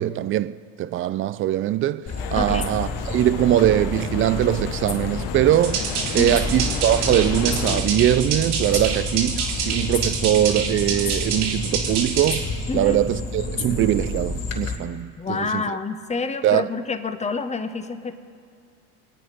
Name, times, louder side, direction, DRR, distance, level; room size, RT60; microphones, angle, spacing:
voice 1, 0.0-5.8 6.1-12.5 12.7-15.6 16.4-16.6, right 12 dB, 30° right, 0.4 m, -22 dB
sound 1, 2.1-14.7, left 3 dB, 35° left, 3.4 m, -29 dB
sound 2, 2.2-7.8, left 9 dB, 60° left, 1.5 m, -34 dB
voice 2, 2.3-2.7 6.2-6.4 12.7-13.1 15.2-18.2, left 4 dB, 15° left, 1.1 m, -28 dB
sound 3, 5.5-12.4, right 6 dB, 80° right, 3.0 m, -27 dB
26.5 x 9.1 x 5.3 m
hypercardioid pair, 90°, 44 cm